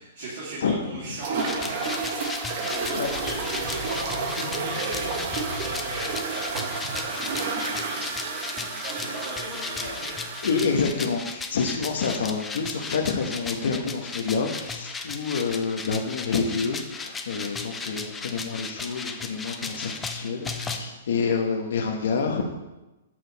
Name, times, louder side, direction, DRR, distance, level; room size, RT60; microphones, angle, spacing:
voice 1, 0.0-8.3 8.6-10.2, right 2 dB, 55° right, -7 dB, 2.3 m, -38 dB
voice 2, 0.6-1.2 2.7-3.1 9.0-9.1 9.5-10.1 10.4-22.4, left 5 dB, 75° left, 1 dB, 1.0 m, -28 dB
sound 1, 1.2-10.8, right 4 dB, 35° right, 0.9 m, -31 dB
sound 2, 1.4-20.8, left 4 dB, 10° left, 0.4 m, -36 dB
sound 3, 2.5-7.8, left 2 dB, 35° left, 2.0 m, -40 dB
7.6 x 6.4 x 4.0 m, 1.0 s
hypercardioid pair, 170°, 0 cm